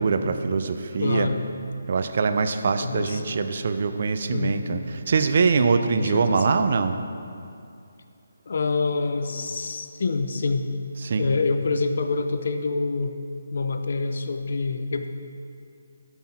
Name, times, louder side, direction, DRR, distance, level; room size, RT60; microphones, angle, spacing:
voice 1, 0.0-1.3 1.9-7.0 11.0-11.3, right 4 dB, 50° right, 9 dB, 0.6 m, -23 dB
voice 2, 1.0-1.4 2.8-3.2 4.3-4.6 6.0-6.4 8.5-10.7 11.2-13.2 13.5-15.1, left 3 dB, 60° left, 8 dB, 0.7 m, -26 dB
12.5 x 5.9 x 4.4 m, 2.5 s
figure-of-eight pair, 150°, 0 cm